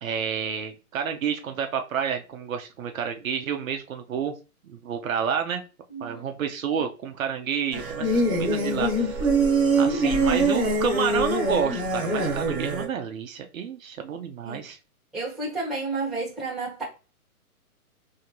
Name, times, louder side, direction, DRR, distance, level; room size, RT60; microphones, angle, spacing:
voice 1, 0.0-4.3 4.6-5.6 6.0-9.3 9.7-14.8, right 7 dB, 65° right, 0.7 m, -29 dB
voice 2, 5.9-6.2 6.7-6.8 10.0-10.2 14.4-14.6 15.1-16.8, right 3 dB, ahead, 1.1 m, -31 dB
sound 1, 7.7-12.9, right 2 dB, 25° right, 1.3 m, -23 dB
3.7 x 2.8 x 2.9 m
hypercardioid pair, 145°, 45 cm